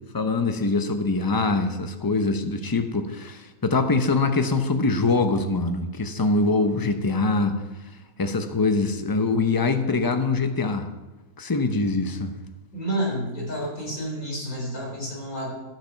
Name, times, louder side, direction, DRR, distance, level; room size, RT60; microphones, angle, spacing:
voice 1, 0.1-7.6 8.2-10.9 11.4-12.3, left 3 dB, 25° left, 7 dB, 0.5 m, -23 dB
voice 2, 12.7-15.5, right 1 dB, 60° left, -3 dB, 4.4 m, -30 dB
12.0 x 8.6 x 5.8 m, 1.1 s
omnidirectional pair, 1.7 m